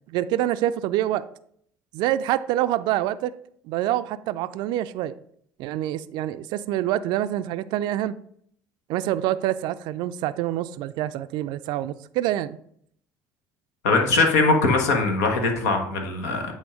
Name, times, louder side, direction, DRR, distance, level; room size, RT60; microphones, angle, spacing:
voice 1, 0.1-1.3 1.9-3.3 3.7-5.1 5.6-8.1 8.9-12.6, right 13 dB, 65° right, 0.4 m, -26 dB
voice 2, 13.8-16.5, left 3 dB, 80° left, 1.2 m, -21 dB
8.3 x 3.7 x 4.9 m
hypercardioid pair, 60°, 8 cm